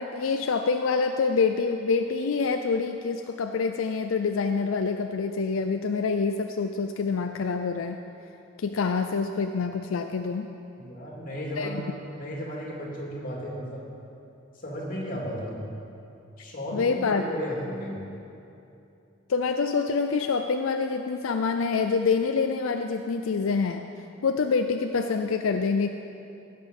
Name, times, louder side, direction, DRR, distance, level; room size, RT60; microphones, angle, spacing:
voice 1, 0.0-8.0 8.6-10.5 11.6-11.8 16.7-17.3 19.3-23.9 24.2-25.9, left 5 dB, 85° left, 6 dB, 0.5 m, -26 dB
voice 2, 10.8-11.8 12.1-13.9 14.6-15.7 16.4-18.0, equal, 45° left, -3 dB, 2.4 m, -34 dB
16.5 x 6.7 x 5.3 m, 2.7 s
head